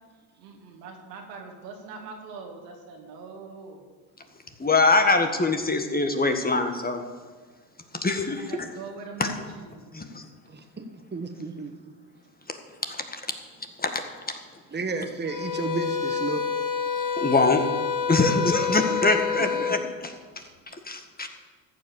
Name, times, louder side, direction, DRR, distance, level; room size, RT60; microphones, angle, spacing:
voice 1, 0.4-3.8 8.4-10.1 19.4-19.8, right 4 dB, 85° right, 1 dB, 2.6 m, -42 dB
voice 2, 4.6-7.0 8.0-8.7 9.2-9.3 9.9-10.2 12.9-13.2 13.8-14.0 17.2-17.6 18.1-19.8 20.8-21.3, left 3 dB, 20° left, 6 dB, 1.6 m, -23 dB
voice 3, 10.5-11.7 14.7-16.6 18.9-19.7 20.4-20.5, right 4 dB, 20° right, 6 dB, 1.5 m, -33 dB
sound 1, 15.3-19.8, left 6 dB, 40° left, 1.6 m, -28 dB
14.0 x 7.6 x 7.2 m, 1.4 s
hypercardioid pair, 70°, 48 cm